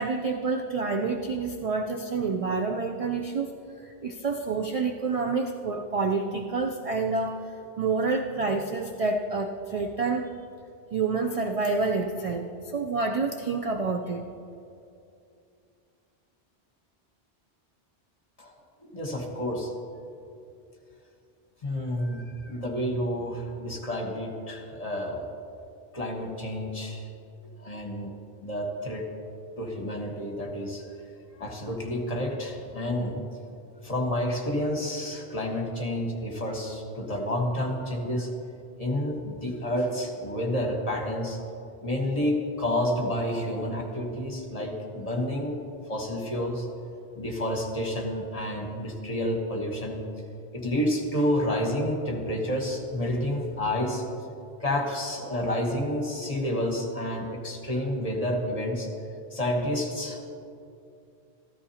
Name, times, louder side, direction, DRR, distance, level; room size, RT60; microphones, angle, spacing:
voice 1, 0.0-7.5 7.8-10.3 10.9-14.3, right 4 dB, 50° right, 3 dB, 0.5 m, -28 dB
voice 2, 18.8-19.7 21.6-25.3 25.9-27.1 27.6-28.1 28.4-29.0 29.6-30.8 31.4-33.2 33.8-38.3 38.8-41.4 41.8-45.6 45.9-46.7 47.1-50.0 50.5-54.0 54.6-58.9 59.3-60.2, left 1 dB, 35° left, 1 dB, 1.3 m, -29 dB
14.0 x 13.5 x 2.8 m, 2.6 s
omnidirectional pair, 1.1 m